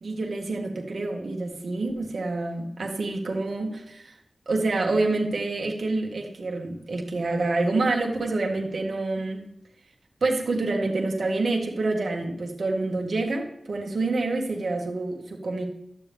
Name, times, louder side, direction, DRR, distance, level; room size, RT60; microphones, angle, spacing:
voice 1, 0.0-4.1 4.5-9.4 10.2-15.6, right 2 dB, 70° right, 1 dB, 1.5 m, -27 dB
11.5 x 7.2 x 3.5 m, 0.78 s
cardioid pair, 50°, 0 cm